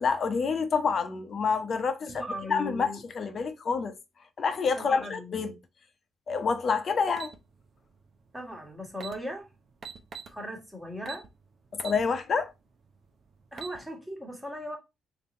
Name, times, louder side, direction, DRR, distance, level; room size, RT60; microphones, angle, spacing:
voice 1, 0.0-2.2 2.5-3.9 4.4-5.6 6.3-7.3 11.8-12.5, left 5 dB, 50° left, 0.8 m, -27 dB
voice 2, 2.1-3.0 4.7-5.4 8.3-9.5 10.3-11.2 13.5-14.8, equal, 5° right, 1.5 m, -38 dB
sound 1, 7.2-7.4 8.6-8.7 8.9-9.2 9.8-10.3 11.0-11.3 11.8-12.0 12.5-12.6 13.3-13.8, right 6 dB, 50° right, 0.7 m, -40 dB
3.5 x 2.9 x 4.2 m
cardioid pair, 90°, 0 cm